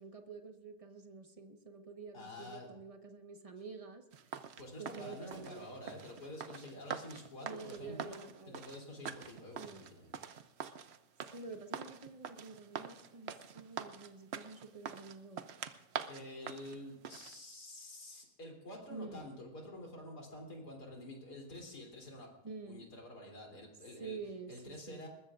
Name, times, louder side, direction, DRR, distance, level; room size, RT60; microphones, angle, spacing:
voice 1, 0.0-4.1 4.8-5.7 7.4-8.6 9.6-9.9 11.3-15.5 18.9-19.2 22.4-22.9 24.0-25.0, right 4 dB, 25° right, 5 dB, 1.2 m, -48 dB
voice 2, 2.1-2.7 4.6-10.1 16.1-22.3 22.7-24.2 24.5-25.1, left 1 dB, 90° left, 1 dB, 3.9 m, -48 dB
sound 1, 4.1-17.3, right 7 dB, 55° right, 0.8 m, -45 dB
22.0 x 20.5 x 2.5 m, 0.93 s
omnidirectional pair, 1.7 m